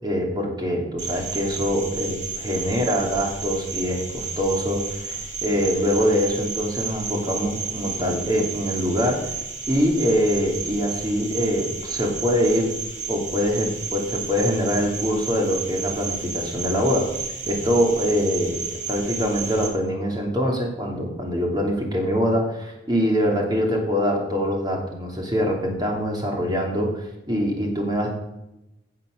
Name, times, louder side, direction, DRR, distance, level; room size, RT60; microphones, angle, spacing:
voice 1, 0.0-9.3 9.7-12.7 13.1-18.6 18.9-28.1, equal, 20° right, 0 dB, 2.8 m, -24 dB
Cricket, 1.0-19.7, right 5 dB, 40° right, 3.7 m, -32 dB
16.5 x 6.7 x 6.4 m, 0.90 s
head